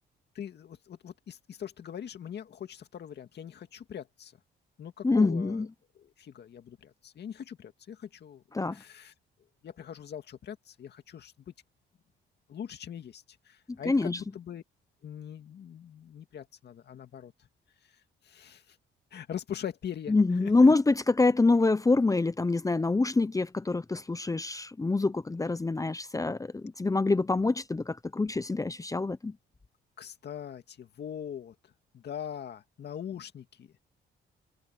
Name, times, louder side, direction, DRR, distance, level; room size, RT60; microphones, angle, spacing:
voice 1, 0.3-4.4 4.8-5.7 6.0-8.4 8.7-9.1 9.6-11.5 12.5-14.6 15.0-17.5 17.8-18.8 19.1-20.7 30.0-31.6 31.9-33.7, left 9 dB, 60° left, 2.1 m, -42 dB
voice 2, 5.0-5.7 8.5-8.8 13.9-14.2 20.1-29.3, left 3 dB, 15° left, 0.8 m, -25 dB
cardioid pair, 90°, 20 cm